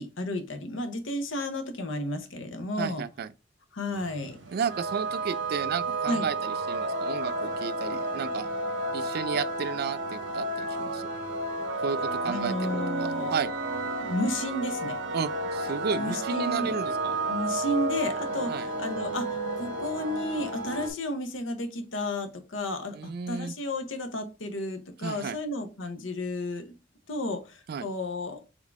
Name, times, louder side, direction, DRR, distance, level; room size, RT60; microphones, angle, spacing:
voice 1, 0.0-3.0 3.7-4.4 6.1-6.3 12.3-13.3 14.0-15.0 16.0-16.7 17.3-26.7 27.1-28.4, left 1 dB, 85° left, 0.9 m, -32 dB
voice 2, 2.8-3.3 4.5-8.5 8.9-11.1 11.8-13.5 15.1-17.2 18.5-18.7 22.9-23.6 25.0-25.4 27.7-27.9, right 6 dB, 55° right, 0.3 m, -33 dB
sound 1, 3.9-20.9, right 2 dB, 75° right, 1.2 m, -31 dB
3.7 x 3.6 x 3.5 m
head